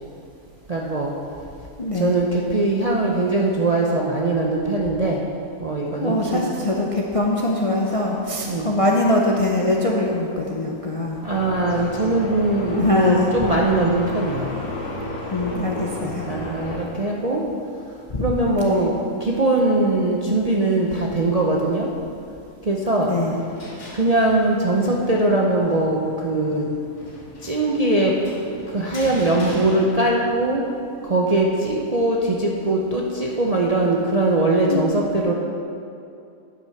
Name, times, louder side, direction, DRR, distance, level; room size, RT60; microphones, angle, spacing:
voice 1, 0.7-1.1 1.9-5.2 5.6-6.4 8.5-8.7 11.2-14.6 16.3-17.4 18.2-21.9 22.6-23.1 23.9-26.7 27.4-28.1 28.5-30.7 31.0-35.3, right 2 dB, 45° right, -2 dB, 0.5 m, -21 dB
voice 2, 1.8-2.1 6.0-11.2 12.7-13.3 15.3-16.3 18.1-18.3 18.6-18.9 23.0-23.4 34.7-34.8, left 2 dB, 40° left, -1 dB, 0.5 m, -22 dB
sound 1, 11.2-16.8, left 2 dB, 85° left, 1.7 m, -32 dB
sound 2, 23.2-30.6, left 1 dB, 70° left, 2.0 m, -40 dB
9.6 x 6.0 x 5.7 m, 2.6 s
omnidirectional pair, 1.5 m